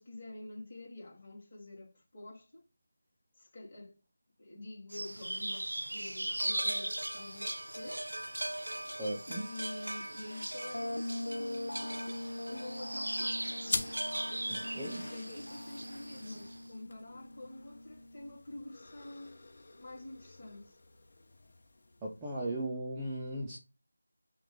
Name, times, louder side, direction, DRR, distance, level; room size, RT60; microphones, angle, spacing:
voice 1, 0.0-2.7 3.3-4.0 4.4-8.1 9.3-11.9 12.4-13.9 15.1-19.4 19.8-20.8, left 2 dB, 25° left, 2.5 m, -48 dB
sound 1, 4.9-16.6, right 1 dB, 85° right, 0.3 m, -38 dB
voice 2, 8.8-9.5 14.5-15.1 22.0-23.6, right 1 dB, 10° right, 0.6 m, -37 dB
sound 2, 10.7-18.4, left 1 dB, 85° left, 0.3 m, -42 dB
sound 3, 13.6-22.6, left 2 dB, 40° left, 1.2 m, -45 dB
5.9 x 2.3 x 3.8 m
figure-of-eight pair, 170°, 0 cm